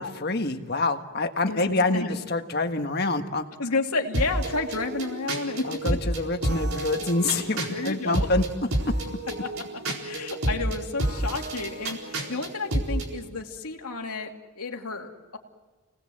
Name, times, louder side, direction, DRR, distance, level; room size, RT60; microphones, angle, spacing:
voice 1, 0.0-3.4 5.6-8.4, left 2 dB, 45° left, 6 dB, 1.6 m, -26 dB
voice 2, 1.5-2.1 3.6-6.0 7.7-8.3 9.4-15.4, left 3 dB, 85° left, 2 dB, 2.5 m, -31 dB
sound 1, 4.1-13.1, right 1 dB, 75° right, 4.3 m, -30 dB
29.5 x 19.5 x 7.8 m, 1.3 s
head